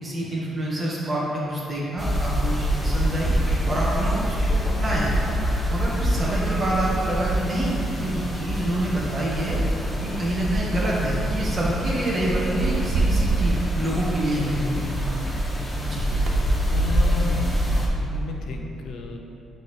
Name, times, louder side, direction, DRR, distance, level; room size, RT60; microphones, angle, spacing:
voice 1, 0.0-3.3 3.7-5.1 5.7-9.6 10.0-15.0 15.8-16.0, right 1 dB, 35° right, -5 dB, 1.5 m, -27 dB
sound 1, 1.7-1.8 4.0-7.6 7.9-8.3 8.7-9.4 10.2-10.4 10.7-11.1 12.4-15.1 16.0-18.4, right 2 dB, 65° right, 0.6 m, -31 dB
sound 2, 2.0-17.9, equal, 5° left, 1.1 m, -25 dB
voice 2, 16.7-17.7 18.0-19.2, left 5 dB, 75° left, 2 dB, 0.6 m, -33 dB
10.5 x 4.0 x 3.2 m, 2.9 s
cardioid pair, 90°, 0 cm